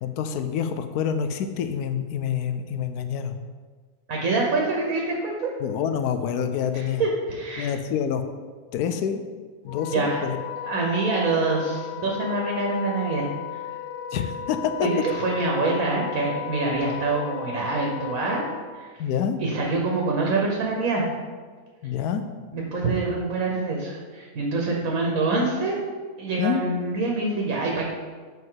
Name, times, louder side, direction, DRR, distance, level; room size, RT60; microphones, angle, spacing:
voice 1, 0.0-3.3 5.6-7.0 7.6-8.2 8.7-9.2 9.6-10.4 14.1-14.9 19.0-19.4 21.8-22.2 26.4-26.6, left 8 dB, 85° left, 9 dB, 1.1 m, -27 dB
voice 2, 4.1-5.5 6.7-7.7 9.9-10.2 10.6-13.6 14.8-18.4 18.7-18.9 19.4-21.0 22.5-25.7 26.2-27.8, right 3 dB, 70° right, -1 dB, 1.4 m, -25 dB
Wind instrument woodwind instrument, 9.7-18.7, left 11 dB, 65° left, 0.8 m, -35 dB
7.4 x 5.3 x 3.8 m, 1.5 s
omnidirectional pair, 1.6 m